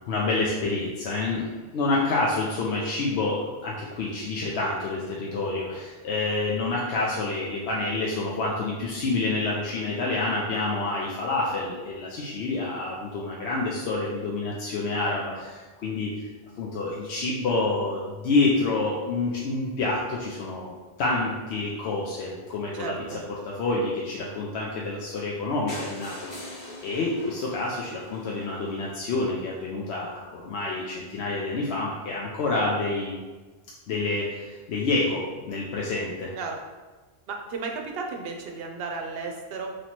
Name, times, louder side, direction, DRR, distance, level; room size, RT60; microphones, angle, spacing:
voice 1, 0.1-16.1 16.6-20.7 21.0-33.2 33.9-36.3, left 3 dB, 85° left, -4 dB, 0.9 m, -28 dB
voice 2, 22.8-23.2 36.4-36.6 37.3-39.7, right 4 dB, 70° right, 2 dB, 0.8 m, -34 dB
sound 1, 25.7-29.6 30.2-30.3 30.5-30.7 30.9-31.0 31.2-31.3, left 1 dB, 50° left, 1.2 m, -43 dB
3.1 x 2.9 x 4.2 m, 1.3 s
omnidirectional pair, 1.1 m